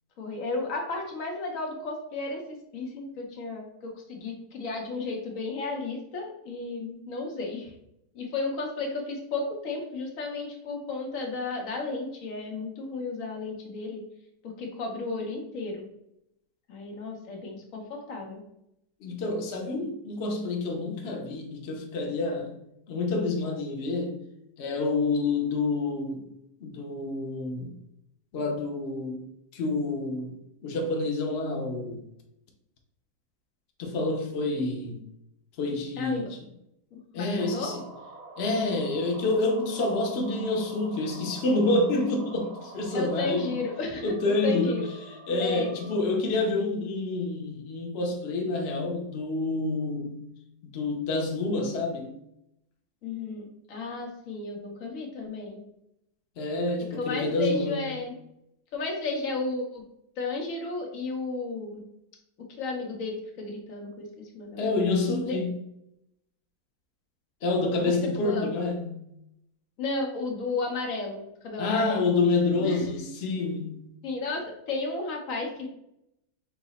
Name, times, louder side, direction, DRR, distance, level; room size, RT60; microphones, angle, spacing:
voice 1, 0.2-7.7 8.1-14.0 14.6-15.9 16.7-18.4 36.0-36.3 36.9-37.7 42.9-44.1 44.4-44.8 45.4-45.8 53.0-55.6 56.9-58.2 58.7-59.8 60.2-61.8 62.6-64.1 64.3-64.6 65.2-65.4 68.1-68.5 69.8-72.1 72.6-72.8 74.0-74.4 74.7-75.7, left 3 dB, 55° left, 1.1 m, -33 dB
voice 2, 19.0-22.5 22.9-24.2 24.6-26.3 26.6-27.7 28.3-29.3 29.5-30.4 30.6-32.0 33.8-35.0 35.6-36.3 37.1-37.8 38.4-43.6 44.0-50.2 50.7-52.2 56.4-57.9 64.6-65.5 67.4-69.0 71.6-73.9, left 2 dB, 85° left, 0.5 m, -28 dB
sound 1, 37.4-46.0, right 2 dB, 60° right, 1.5 m, -47 dB
4.7 x 2.0 x 4.1 m
omnidirectional pair, 2.0 m